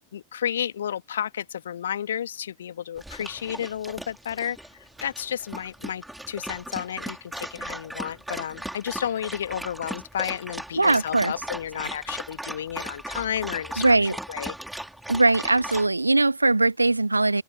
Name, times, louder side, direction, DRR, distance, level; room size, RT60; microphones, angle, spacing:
voice 1, 0.1-14.6, left 9 dB, 65° left, 1.9 m, -32 dB
Dog, 3.0-15.9, right 1 dB, 5° right, 3.9 m, -38 dB
voice 2, 10.8-11.3 13.8-14.2 15.1-17.4, right 2 dB, 80° right, 1.6 m, -20 dB
figure-of-eight pair, 90°, 0 cm